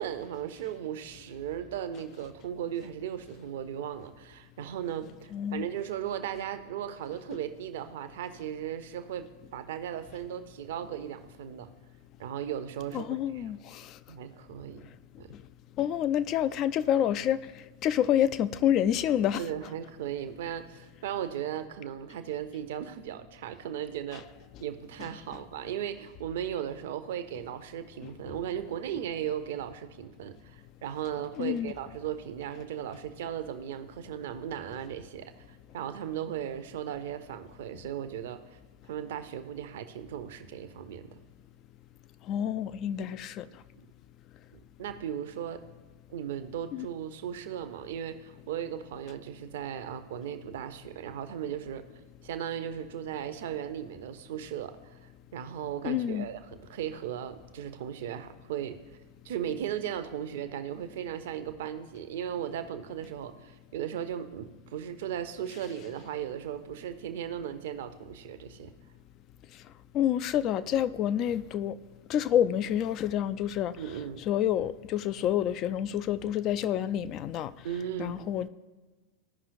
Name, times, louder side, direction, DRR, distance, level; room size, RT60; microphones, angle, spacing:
voice 1, 0.0-11.7 12.2-13.5 14.1-14.9 15.2-15.3 19.4-24.2 24.6-38.6 38.9-41.2 44.8-45.7 46.1-51.8 52.2-54.7 55.3-58.8 59.2-68.7 73.8-74.2 77.6-78.3, right 9 dB, 55° right, 0.6 m, -37 dB
voice 2, 5.3-5.6 12.9-14.0 15.3-15.4 15.8-19.4 31.4-31.7 42.3-43.5 46.7-46.9 55.8-56.3 69.9-71.8 72.1-73.8 74.3-77.5 78.0-78.5, left 10 dB, 35° left, 0.3 m, -28 dB
14.5 x 5.6 x 2.6 m
figure-of-eight pair, 90°, 0 cm